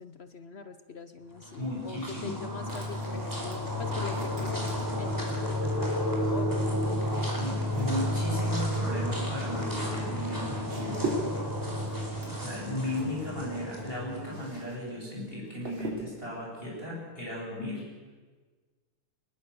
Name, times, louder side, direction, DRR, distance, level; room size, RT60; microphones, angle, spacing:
voice 1, 0.0-7.2, left 5 dB, 80° left, 10 dB, 0.5 m, -43 dB
sound 1, 1.3-14.6, left 1 dB, 10° right, 4.4 m, -32 dB
voice 2, 1.6-2.3 7.3-11.2 12.4-17.8, left 1 dB, 25° left, -4 dB, 8.2 m, -36 dB
sound 2, 2.7-5.5 6.5-14.8 15.0-16.3, right 2 dB, 65° right, 4.6 m, -42 dB
23.0 x 21.0 x 6.9 m, 1.4 s
omnidirectional pair, 2.4 m